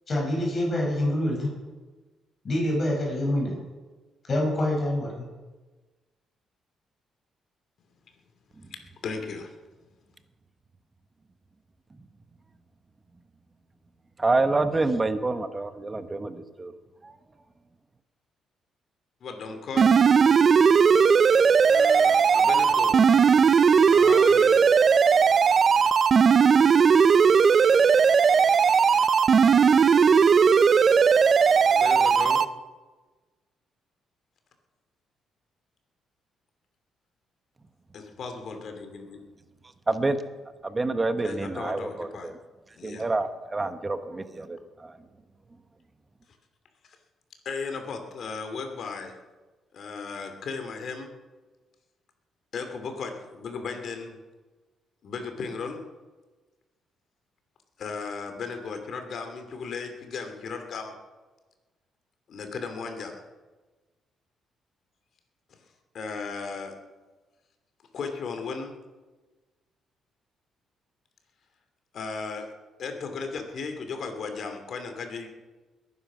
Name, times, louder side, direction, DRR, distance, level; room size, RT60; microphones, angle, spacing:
voice 1, 0.1-1.5 2.4-3.6 4.2-5.1, left 1 dB, 40° left, -1 dB, 6.5 m, -26 dB
voice 2, 8.7-9.6 19.2-19.9 21.7-23.1 23.9-24.6 31.7-32.4 37.9-39.2 41.2-42.3 42.8-43.1 47.4-49.2 49.7-51.1 52.5-54.2 55.0-55.8 57.8-61.0 62.3-63.2 65.9-66.7 67.9-68.7 71.9-72.5 72.8-75.3, left 4 dB, 60° left, 6 dB, 2.7 m, -36 dB
voice 3, 14.2-16.7 17.0-17.1 39.9-40.2 40.6-42.3 42.8-45.0, right 3 dB, 25° right, 10 dB, 1.2 m, -27 dB
sound 1, 19.8-32.4, right 6 dB, 45° right, 0.7 m, -18 dB
21.0 x 9.9 x 6.2 m, 1.3 s
cardioid pair, 90°, 0 cm